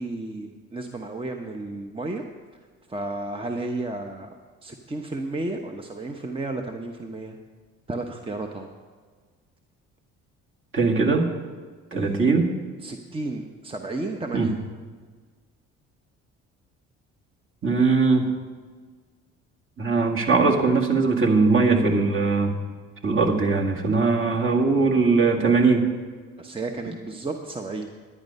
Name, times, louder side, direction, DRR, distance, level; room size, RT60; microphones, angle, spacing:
voice 1, 0.0-2.2 2.9-4.3 4.6-7.4 7.9-8.7 11.9-12.3 12.8-14.6 26.4-27.9, right 2 dB, 15° right, 4 dB, 0.9 m, -32 dB
voice 2, 10.7-11.3 11.9-12.5 14.3-14.5 17.6-18.3 19.8-22.5 23.0-25.9, right 4 dB, 40° right, 0 dB, 1.9 m, -20 dB
11.0 x 9.7 x 5.4 m, 1.5 s
supercardioid pair, 70°, 32 cm